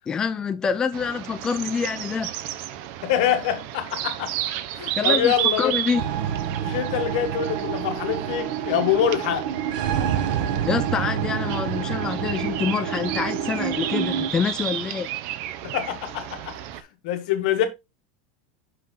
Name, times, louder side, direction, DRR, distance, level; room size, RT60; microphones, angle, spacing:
voice 1, 0.1-2.3 5.0-6.0 10.7-15.1, left 6 dB, 15° left, 0.4 m, -26 dB
sound 1, 0.9-16.8, right 12 dB, 55° right, 0.7 m, -32 dB
voice 2, 3.0-4.3 4.7-5.8 6.6-9.5 15.6-16.6 17.0-17.7, left 10 dB, 70° left, 1.4 m, -25 dB
sound 2, 5.9-14.3, right 9 dB, 70° right, 1.0 m, -28 dB
5.5 x 5.5 x 3.7 m
supercardioid pair, 150°, 4 cm